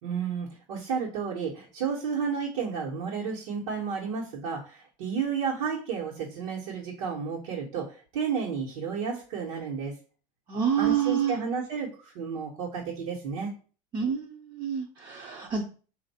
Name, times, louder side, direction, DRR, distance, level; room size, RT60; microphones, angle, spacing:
voice 1, 0.0-9.9 10.8-13.5, right 6 dB, 85° right, -5 dB, 1.2 m, -32 dB
voice 2, 10.5-11.4 13.9-15.6, right 8 dB, 25° right, 1 dB, 0.5 m, -27 dB
4.5 x 2.6 x 4.2 m, 0.38 s
supercardioid pair, 155°, 17 cm